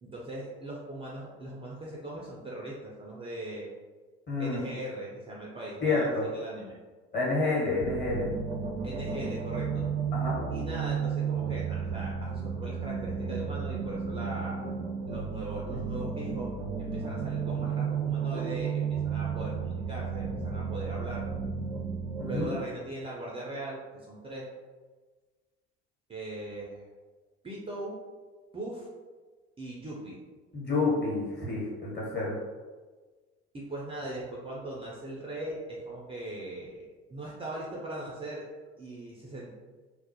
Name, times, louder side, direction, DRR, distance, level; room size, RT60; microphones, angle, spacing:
voice 1, 0.0-3.7 4.4-6.8 8.8-9.9 10.5-14.6 15.1-21.3 22.2-24.5 26.1-26.8 27.4-28.0 28.5-28.9 29.6-30.2 33.5-36.8 37.1-38.4 38.8-39.5, right 1 dB, 15° right, -4 dB, 0.4 m, -39 dB
voice 2, 4.3-4.6 5.8-6.2 7.1-8.3 10.1-10.3 22.2-22.5 30.5-32.3, left 3 dB, 30° left, -5 dB, 1.3 m, -29 dB
sound 1, 7.8-22.5, right 6 dB, 70° right, 0.5 m, -33 dB
2.3 x 2.0 x 2.7 m, 1.4 s
hypercardioid pair, 65°, 33 cm